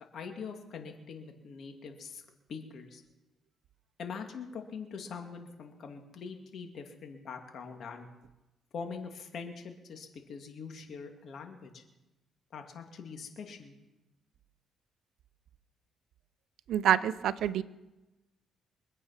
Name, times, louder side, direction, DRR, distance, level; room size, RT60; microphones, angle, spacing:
voice 1, 0.1-2.2 2.5-3.0 4.0-8.1 8.7-11.8 12.5-13.7, left 5 dB, 60° left, 4 dB, 2.3 m, -43 dB
voice 2, 16.7-17.6, right 10 dB, 75° right, 16 dB, 0.6 m, -27 dB
24.5 x 8.4 x 5.8 m, 1.0 s
cardioid pair, 90°, 0 cm